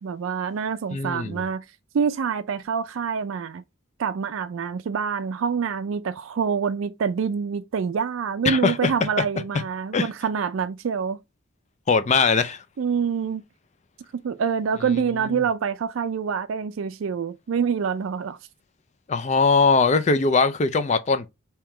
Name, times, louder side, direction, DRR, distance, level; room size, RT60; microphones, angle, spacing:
voice 1, 0.0-1.6 1.9-3.6 4.0-11.2 12.8-13.4 14.1-18.4, right 6 dB, 75° right, 0.4 m, -26 dB
voice 2, 0.9-1.4 8.4-8.9 9.9-10.1 11.9-12.6 15.3-15.4 19.1-21.3, left 4 dB, 35° left, 0.4 m, -21 dB
3.6 x 2.9 x 4.3 m
head